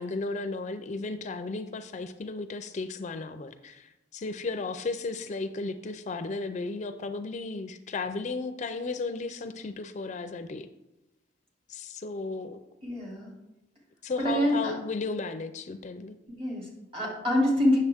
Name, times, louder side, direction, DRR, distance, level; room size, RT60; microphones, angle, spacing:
voice 1, 0.0-10.7 11.7-12.6 14.0-16.2, left 3 dB, 40° left, 9 dB, 0.4 m, -34 dB
voice 2, 12.8-13.3 14.2-14.7 16.4-17.8, left 1 dB, 30° right, -3 dB, 2.6 m, -26 dB
8.4 x 6.8 x 3.5 m, 0.94 s
head